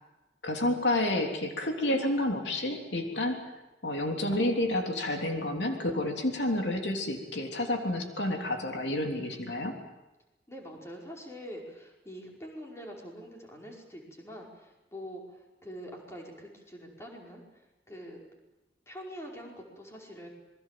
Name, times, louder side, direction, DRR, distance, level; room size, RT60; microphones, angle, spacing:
voice 1, 0.4-3.5 3.8-9.7, left 1 dB, 85° left, 3 dB, 3.3 m, -30 dB
voice 2, 10.5-18.2 18.9-20.3, equal, 15° left, -1 dB, 5.1 m, -45 dB
26.5 x 22.0 x 7.6 m, 1.0 s
head